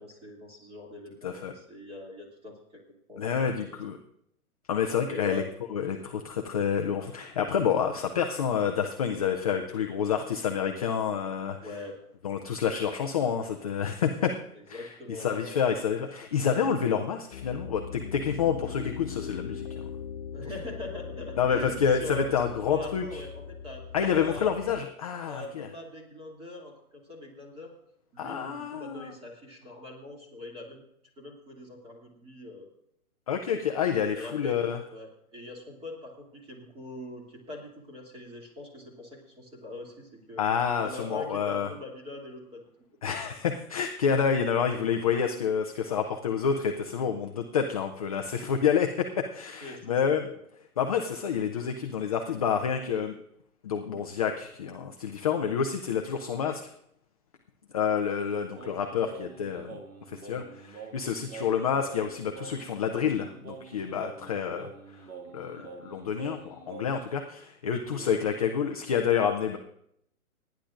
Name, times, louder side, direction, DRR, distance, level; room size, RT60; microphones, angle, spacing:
voice 1, 0.0-2.8 3.1-3.8 5.0-5.5 11.6-12.0 14.5-15.6 20.3-22.3 22.7-24.5 25.3-27.7 28.1-30.8 31.2-32.7 34.1-34.6 34.9-40.5 40.8-42.6 49.6-50.4 63.9-64.1 65.5-65.8 67.7-68.4, left 2 dB, 15° right, 0 dB, 2.6 m, -42 dB
voice 2, 3.2-4.0 4.7-5.4 5.7-11.6 12.2-14.3 14.7-19.8 21.4-23.2 23.9-25.7 28.2-29.1 33.3-34.8 40.4-41.7 43.0-49.1 49.3-50.2 50.8-53.2 53.6-56.6 57.7-59.8 60.1-64.7 65.3-69.6, left 7 dB, 25° left, 4 dB, 0.5 m, -28 dB
Piano, 17.3-24.8, left 7 dB, 45° left, 1.3 m, -40 dB
Singing, 58.6-67.2, right 4 dB, 75° right, 2.2 m, -46 dB
26.5 x 10.5 x 2.5 m, 0.75 s
hypercardioid pair, 135°, 44 cm